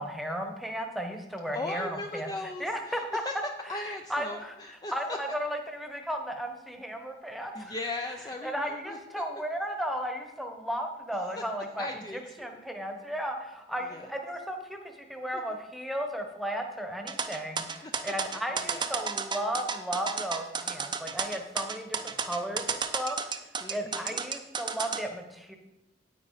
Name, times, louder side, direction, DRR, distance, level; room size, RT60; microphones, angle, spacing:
voice 1, 0.0-2.3 2.6-3.2 4.1-4.5 4.9-7.7 8.4-11.9 12.4-25.6, equal, ahead, 4 dB, 1.1 m, -35 dB
voice 2, 1.5-3.3 3.7-5.2 7.5-9.2 11.3-11.4 11.8-12.6 13.9-14.1 15.3-15.6 17.6-18.1 18.5-18.9 23.6-24.2, left 2 dB, 25° left, 4 dB, 0.5 m, -39 dB
sound 1, 17.1-25.0, right 5 dB, 25° right, 0.6 m, -32 dB
9.4 x 8.8 x 4.0 m, 0.93 s
head